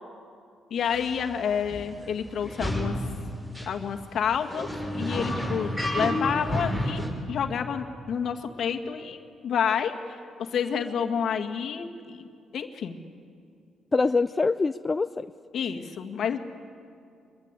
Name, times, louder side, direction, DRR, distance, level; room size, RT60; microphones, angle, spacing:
voice 1, 0.7-3.1 3.7-4.7 5.0-7.0 7.3-12.3 12.5-13.0 15.5-16.4, left 7 dB, 65° left, 6 dB, 1.9 m, -29 dB
sound 1, 0.9-1.1 1.7-1.8 2.4-3.0 3.6-3.7 4.3-7.1, left 1 dB, 10° right, 6.7 m, -29 dB
voice 2, 13.9-15.3, left 3 dB, 25° left, 10 dB, 0.5 m, -24 dB
24.0 x 22.0 x 8.2 m, 2.5 s
cardioid pair, 90°, 0 cm